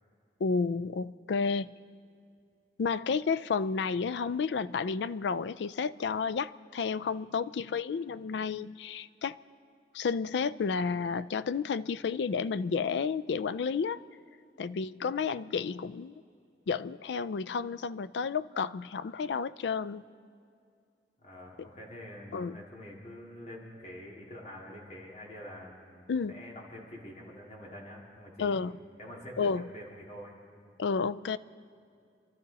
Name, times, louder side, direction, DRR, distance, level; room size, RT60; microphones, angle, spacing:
voice 1, 0.4-1.7 2.8-9.4 9.9-14.0 14.6-16.1 16.7-20.0 21.6-21.7 22.3-22.6 26.1-26.4 28.4-28.7 29.4-29.6 30.8-31.4, left 5 dB, 80° left, 15 dB, 0.4 m, -31 dB
voice 2, 21.2-28.6 29.0-30.4, left 1 dB, 40° left, -2 dB, 2.4 m, -46 dB
26.5 x 12.5 x 4.1 m, 2.4 s
head